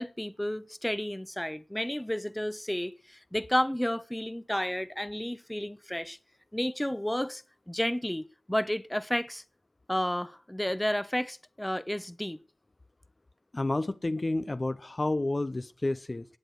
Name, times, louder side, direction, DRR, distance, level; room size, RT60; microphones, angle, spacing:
voice 1, 0.0-6.2 6.5-9.4 9.9-12.4, left 1 dB, 10° left, 0.8 m, -31 dB
voice 2, 13.5-16.3, left 2 dB, 40° left, 0.6 m, -30 dB
17.0 x 8.1 x 6.4 m
cardioid pair, 50°, 0 cm